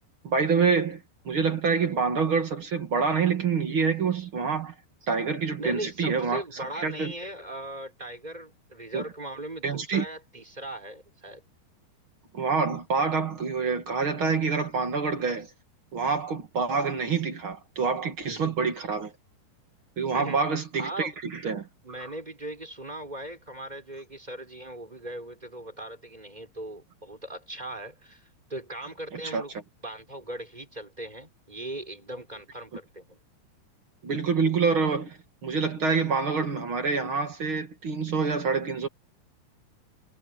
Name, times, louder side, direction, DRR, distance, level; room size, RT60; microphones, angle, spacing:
voice 1, 0.2-4.7 5.1-6.4 6.8-7.1 8.9-9.0 9.6-10.0 12.3-15.5 15.9-19.1 20.0-21.7 29.2-29.4 34.0-38.9, right 5 dB, 40° right, 2.1 m, -26 dB
voice 2, 5.6-11.4 18.3-18.4 20.1-20.4 20.8-21.2 21.8-29.5 29.8-33.2, right 1 dB, 10° right, 4.6 m, -39 dB
omnidirectional pair, 5.1 m